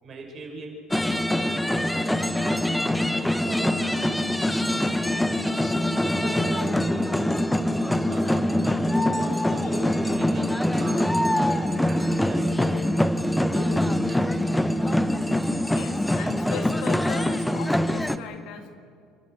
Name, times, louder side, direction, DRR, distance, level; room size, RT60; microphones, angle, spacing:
voice 1, 0.0-4.3 4.7-5.6 5.9-7.3 8.1-8.8 9.1-11.3 11.8-12.8 13.3-14.7, right 3 dB, 45° right, 1 dB, 6.0 m, -40 dB
sound 1, 0.9-18.2, left 1 dB, 5° left, 1.1 m, -24 dB
voice 2, 15.6-18.7, left 8 dB, 65° left, 7 dB, 2.0 m, -38 dB
30.0 x 12.5 x 7.9 m, 2.1 s
hypercardioid pair, 70°, 0 cm